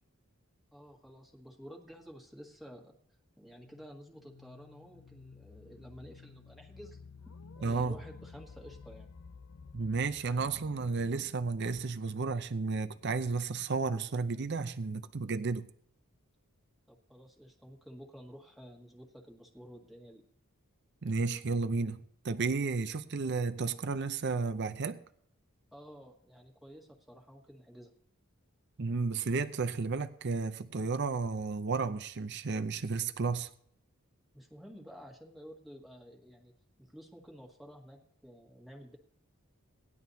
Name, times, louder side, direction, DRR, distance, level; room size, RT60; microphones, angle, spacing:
voice 1, 0.7-3.0 3.4-7.0 7.3-9.1 16.9-20.2 25.7-27.9 34.3-36.5 36.8-39.0, equal, ahead, 1.7 m, -51 dB
sound 1, 3.5-10.9, left 5 dB, 85° left, 0.6 m, -53 dB
voice 2, 7.6-8.0 9.7-15.7 21.0-25.0 28.8-33.5, right 4 dB, 50° right, 0.6 m, -32 dB
sound 2, 10.4-14.5, right 2 dB, 85° right, 0.9 m, -57 dB
18.5 x 11.0 x 2.8 m
head